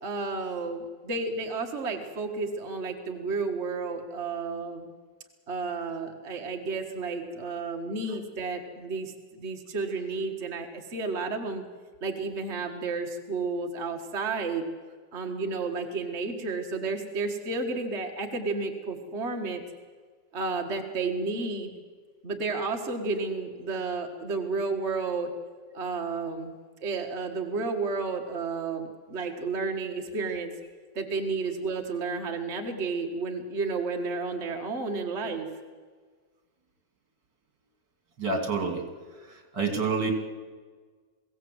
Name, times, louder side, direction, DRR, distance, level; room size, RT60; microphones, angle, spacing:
voice 1, 0.0-4.9 5.5-11.6 12.0-14.7 15.1-19.6 20.3-21.7 22.2-25.3 25.7-26.5 26.8-30.5 31.0-35.5, right 4 dB, 40° right, 2 dB, 1.8 m, -32 dB
voice 2, 38.2-38.8 39.1-40.1, right 4 dB, 65° right, 4 dB, 3.3 m, -29 dB
22.5 x 16.5 x 7.9 m, 1.5 s
omnidirectional pair, 2.0 m